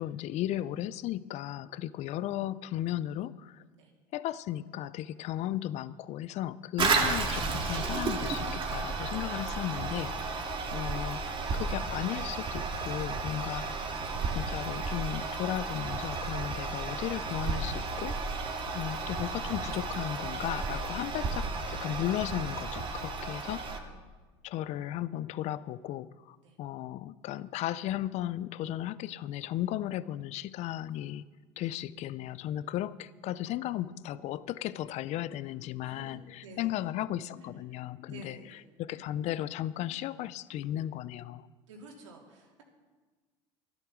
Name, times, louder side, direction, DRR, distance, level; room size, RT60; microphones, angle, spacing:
voice 1, 0.0-3.6 4.1-10.4 10.7-13.9 14.3-18.2 18.7-23.9 24.4-31.3 31.6-41.5, left 13 dB, 50° left, 18 dB, 0.5 m, -35 dB
Toilet flush, 6.8-23.8, right 4 dB, 35° right, 2.1 m, -33 dB
voice 2, 36.4-36.7 38.1-38.6 41.7-42.6, right 2 dB, 85° right, -1 dB, 3.1 m, -50 dB
12.0 x 12.0 x 6.1 m, 1.3 s
hypercardioid pair, 90°, 15 cm